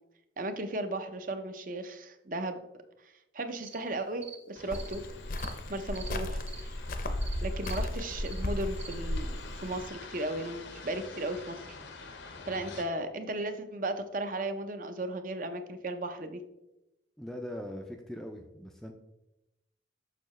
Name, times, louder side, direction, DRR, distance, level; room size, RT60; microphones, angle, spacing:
voice 1, 0.4-2.6 3.0-5.0 5.7-6.8 7.4-9.3 9.5-11.6 12.0-12.2 12.5-16.4, right 2 dB, 45° right, 8 dB, 0.6 m, -36 dB
sound 1, 3.6-3.8 4.2-4.4 4.7-5.0 5.4-5.5 5.9-6.1 6.5-6.6 7.2-7.3 7.6-7.8 8.2-8.4 8.8-8.9, right 6 dB, 85° right, 2.1 m, -46 dB
sound 2, 4.6-12.8, left 4 dB, 90° left, 0.9 m, -47 dB
Cricket, 4.7-9.9, left 1 dB, 50° left, 0.6 m, -35 dB
voice 2, 17.2-18.9, left 1 dB, 5° left, 3 dB, 0.4 m, -41 dB
6.7 x 6.3 x 3.1 m, 0.93 s
head